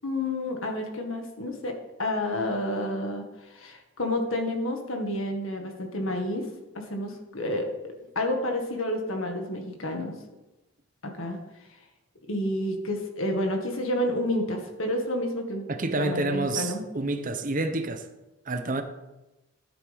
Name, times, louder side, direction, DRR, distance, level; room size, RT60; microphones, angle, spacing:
voice 1, 0.0-1.7 2.0-6.5 6.8-10.1 11.0-11.4 12.3-15.7 16.0-16.8, left 1 dB, 75° left, 1.8 m, -30 dB
voice 2, 15.7-18.1 18.5-18.8, right 2 dB, 40° right, 0.8 m, -28 dB
12.0 x 9.8 x 3.6 m
head